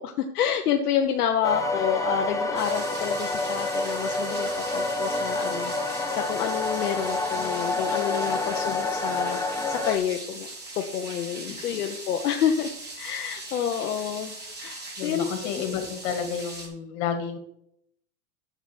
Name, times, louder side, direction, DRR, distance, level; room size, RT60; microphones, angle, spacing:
voice 1, 0.0-10.5 10.8-14.3 14.6-15.5, left 8 dB, 80° left, 3 dB, 1.2 m, -29 dB
sound 1, 1.4-10.0, left 2 dB, 5° left, 1.3 m, -28 dB
sound 2, 2.5-16.7, right 2 dB, 20° right, 4.3 m, -40 dB
voice 2, 15.0-17.4, left 7 dB, 60° left, 6 dB, 2.8 m, -31 dB
8.4 x 7.9 x 6.4 m, 0.73 s
hypercardioid pair, 110°, 44 cm